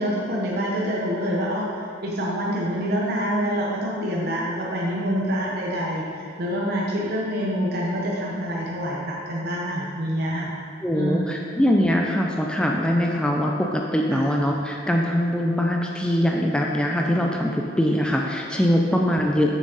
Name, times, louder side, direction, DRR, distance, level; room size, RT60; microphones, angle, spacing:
voice 1, 0.0-10.5 10.9-11.3 14.1-14.2, equal, 55° right, -3 dB, 0.8 m, -26 dB
voice 2, 10.8-19.6, equal, 5° left, 0 dB, 0.4 m, -22 dB
7.2 x 6.3 x 3.9 m, 2.4 s
head